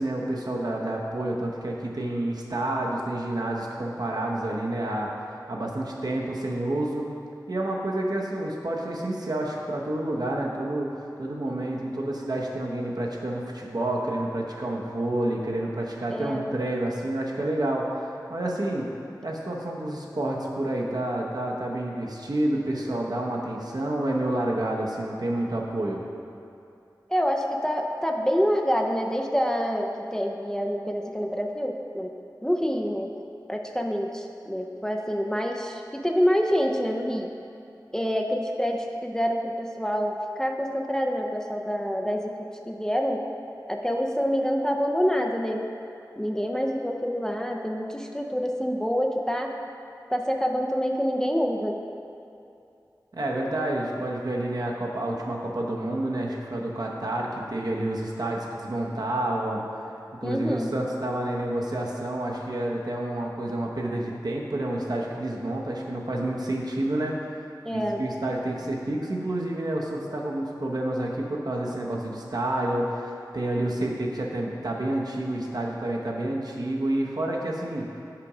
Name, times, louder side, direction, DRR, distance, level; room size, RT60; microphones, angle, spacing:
voice 1, 0.0-7.0 7.5-10.9 11.2-18.9 19.2-26.0 53.1-59.6 60.2-67.2 67.7-77.9, right 1 dB, 60° right, -2 dB, 0.9 m, -29 dB
voice 2, 16.1-16.5 27.1-32.1 32.4-33.1 33.5-37.3 37.9-42.3 42.7-43.2 43.7-45.6 46.2-49.5 50.1-51.8 60.2-60.7 67.6-68.0, equal, 10° left, 1 dB, 0.4 m, -26 dB
5.8 x 5.1 x 4.9 m, 2.6 s
wide cardioid pair, 65°, 7 cm